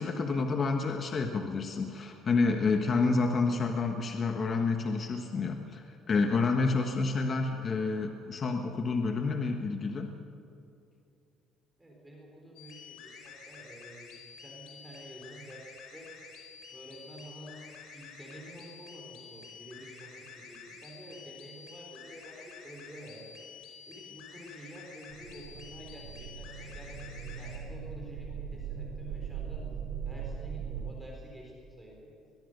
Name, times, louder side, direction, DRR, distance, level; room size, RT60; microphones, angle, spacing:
voice 1, 0.0-10.2, left 4 dB, 30° left, 4 dB, 1.3 m, -29 dB
voice 2, 11.8-16.1 16.7-17.6 17.9-29.7 30.0-32.1, right 1 dB, 5° right, -2 dB, 4.1 m, -49 dB
sound 1, 12.6-27.6, left 6 dB, 85° left, 5.1 m, -50 dB
sound 2, 25.1-30.9, right 7 dB, 65° right, 3.2 m, -40 dB
22.0 x 22.0 x 6.7 m, 2.8 s
cardioid pair, 155°, 0 cm